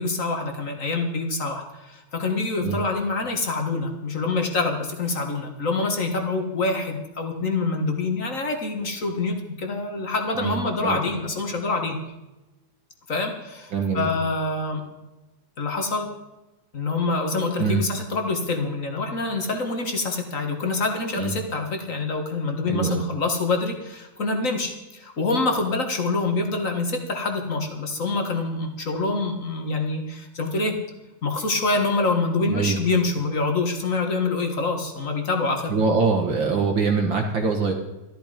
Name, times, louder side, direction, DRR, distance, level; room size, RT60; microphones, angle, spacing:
voice 1, 0.0-12.0 13.1-14.8 15.6-16.1 16.7-30.7 31.2-35.8, left 3 dB, 35° left, 4 dB, 1.4 m, -26 dB
voice 2, 10.4-11.0 13.7-14.1 17.6-17.8 21.2-21.3 22.7-23.0 32.5-32.8 35.7-37.7, right 4 dB, 50° right, 3 dB, 1.8 m, -23 dB
14.0 x 12.5 x 5.1 m, 1.0 s
omnidirectional pair, 3.5 m